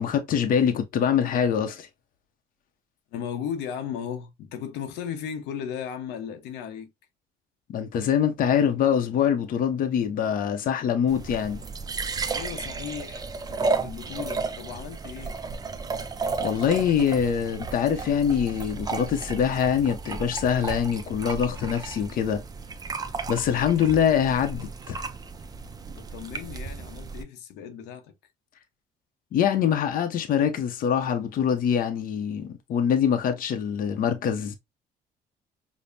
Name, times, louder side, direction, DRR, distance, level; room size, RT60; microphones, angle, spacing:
voice 1, 0.0-1.9 7.7-11.6 16.4-22.4 23.3-25.0 29.3-34.6, left 8 dB, 55° left, 0.6 m, -24 dB
voice 2, 3.1-6.9 12.3-15.4 25.9-28.1, left 8 dB, 90° left, 0.7 m, -36 dB
sound 1, 11.1-27.2, right 4 dB, 20° right, 0.4 m, -33 dB
5.1 x 2.1 x 2.6 m
cardioid pair, 110°, 17 cm